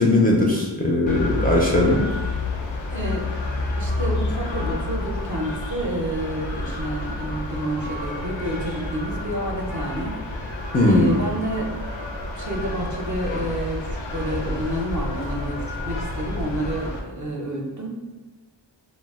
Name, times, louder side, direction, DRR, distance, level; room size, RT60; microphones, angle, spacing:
voice 1, 0.0-2.0 10.7-11.1, left 2 dB, 20° left, -3 dB, 0.3 m, -19 dB
sound 1, 1.1-17.0, left 2 dB, 85° left, 0.5 m, -29 dB
voice 2, 2.9-10.2 10.8-11.7 12.3-17.9, right 1 dB, 45° right, -1 dB, 0.5 m, -29 dB
2.3 x 2.0 x 3.4 m, 1.2 s
wide cardioid pair, 60°, 44 cm